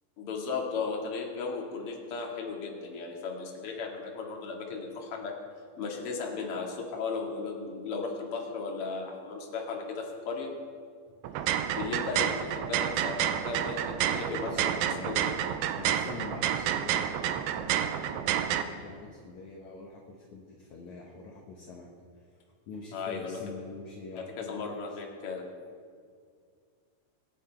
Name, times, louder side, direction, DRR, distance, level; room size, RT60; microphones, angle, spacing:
voice 1, 0.2-5.3 5.8-10.5 11.7-14.5 15.0-15.3 22.9-23.4 24.4-25.4, left 4 dB, 45° left, -1 dB, 2.4 m, -36 dB
sound 1, 11.2-18.6, right 10 dB, 85° right, 2.5 m, -29 dB
voice 2, 14.0-15.2 15.8-21.9 22.2-22.4 22.7-25.0, left 3 dB, 60° left, -1 dB, 2.3 m, -45 dB
23.5 x 9.6 x 4.5 m, 2.1 s
omnidirectional pair, 4.4 m